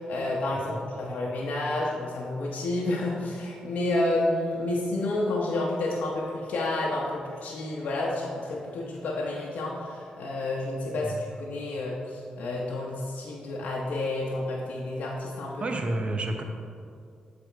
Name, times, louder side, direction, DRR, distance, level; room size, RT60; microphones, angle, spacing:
voice 1, 0.0-15.7, left 2 dB, 70° left, -3 dB, 0.8 m, -30 dB
voice 2, 15.6-16.4, right 2 dB, 45° right, 4 dB, 0.8 m, -30 dB
7.7 x 3.5 x 4.6 m, 2.3 s
supercardioid pair, 55°, 3 cm